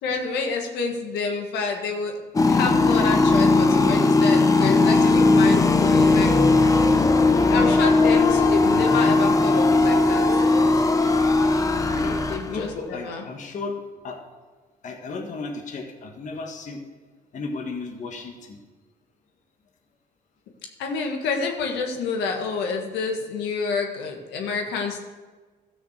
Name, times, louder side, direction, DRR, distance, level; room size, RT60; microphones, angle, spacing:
voice 1, 0.0-2.1 2.5-6.3 7.5-10.3 12.3-13.2 20.8-25.0, left 4 dB, 80° left, 2 dB, 1.6 m, -28 dB
sound 1, 2.4-12.7, left 3 dB, 20° left, 0.8 m, -18 dB
voice 2, 11.9-14.2 14.8-16.8 17.3-18.6, left 3 dB, 45° left, 2 dB, 1.5 m, -34 dB
13.5 x 6.4 x 6.6 m, 1.4 s
cardioid pair, 110°, 17 cm